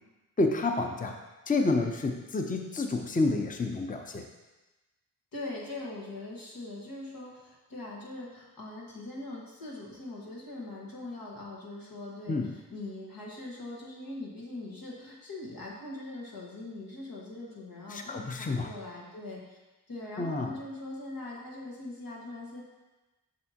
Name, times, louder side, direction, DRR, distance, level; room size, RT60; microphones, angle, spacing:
voice 1, 0.4-1.2 1.5-4.3 12.3-12.5 17.9-18.7 20.2-20.5, left 3 dB, 25° left, 3 dB, 0.6 m, -29 dB
voice 2, 5.3-19.6 19.9-22.6, left 2 dB, 90° left, -4 dB, 1.6 m, -41 dB
6.7 x 6.5 x 2.9 m, 1.1 s
wide cardioid pair, 65°, 34 cm